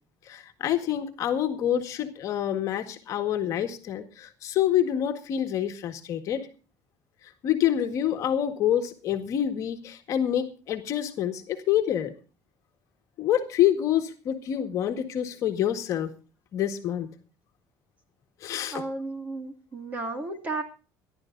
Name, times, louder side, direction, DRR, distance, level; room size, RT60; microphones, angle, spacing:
voice 1, 0.3-6.4 7.4-12.1 13.2-16.1 16.5-17.1 18.4-18.8, left 10 dB, 45° left, 5 dB, 1.8 m, -27 dB
voice 2, 18.7-20.6, right 2 dB, 20° right, 5 dB, 2.3 m, -33 dB
26.0 x 11.5 x 2.6 m, 0.36 s
cardioid pair, 175°, 8 cm